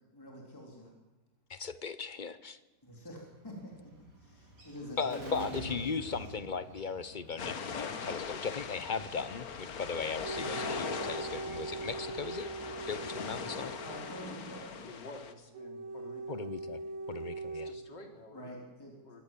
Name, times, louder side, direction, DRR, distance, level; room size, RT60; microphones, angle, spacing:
voice 1, 0.1-0.9 2.8-3.9 4.2-6.1 13.8-14.9 18.3-18.9, equal, 10° left, -1 dB, 3.7 m, -45 dB
voice 2, 1.5-2.6 5.0-12.5 12.9-13.7 16.3-16.8 17.1-17.7, left 5 dB, 40° left, 14 dB, 0.7 m, -37 dB
Bird, 3.0-14.5, right 1 dB, 70° right, 4.5 m, -51 dB
sound 1, 7.4-15.3, left 6 dB, 55° left, 1.8 m, -41 dB
sound 2, 10.2-14.2 15.5-17.7, right 3 dB, 50° right, 1.7 m, -41 dB
voice 3, 14.8-16.5 17.7-18.5 19.0-19.2, left 2 dB, 80° left, 3 dB, 3.6 m, -50 dB
24.5 x 17.5 x 7.5 m, 1.1 s
omnidirectional pair, 1.9 m